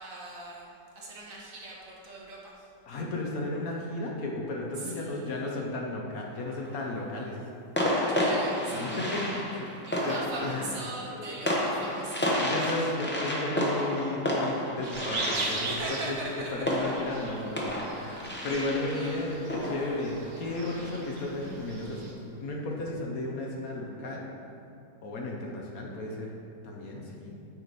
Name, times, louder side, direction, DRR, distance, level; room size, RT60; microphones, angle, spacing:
voice 1, 0.0-2.5 4.8-5.5 8.1-9.6 9.9-12.2 12.6-12.7 15.3-16.7 17.7-18.0 18.3-18.5 18.9-19.2, right 2 dB, 55° right, -4 dB, 1.4 m, -40 dB
voice 2, 2.9-7.4 8.7-9.2 9.6-9.7 10.0-10.8 11.1-11.7 12.4-16.2 16.5-24.3 25.0-26.3 26.6-27.4, left 2 dB, 60° left, -1 dB, 1.2 m, -34 dB
sound 1, 6.2-6.8 7.8-21.2, equal, 10° left, 0.5 m, -31 dB
sound 2, 14.8-22.1, right 3 dB, 75° right, 1.6 m, -40 dB
sound 3, 18.5-21.4, right 3 dB, 40° left, 0.8 m, -43 dB
8.8 x 4.8 x 4.1 m, 2.6 s
omnidirectional pair, 1.9 m